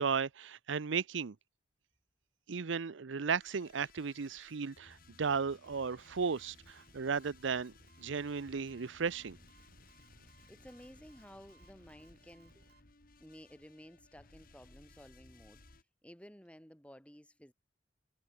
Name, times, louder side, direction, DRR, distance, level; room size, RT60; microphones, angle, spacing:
voice 1, 0.0-1.3 2.5-7.7 8.0-9.4, right 5 dB, 75° right, 0.6 m, -35 dB
sound 1, 3.2-15.8, left 3 dB, 45° left, 2.3 m, -61 dB
sound 2, 5.7-12.8, right 2 dB, 55° right, 2.3 m, -64 dB
voice 2, 10.5-12.7 13.2-15.6 16.0-17.5, equal, 5° left, 5.7 m, -55 dB
head